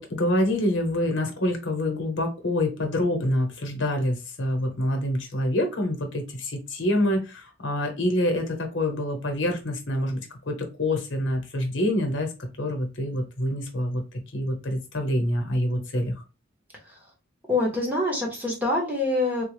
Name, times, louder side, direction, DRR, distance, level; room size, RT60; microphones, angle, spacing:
voice 1, 0.0-16.1, left 1 dB, 65° left, 4 dB, 0.9 m, -26 dB
voice 2, 17.5-19.4, left 2 dB, 10° right, -2 dB, 1.1 m, -25 dB
3.5 x 2.2 x 3.2 m, 0.29 s
head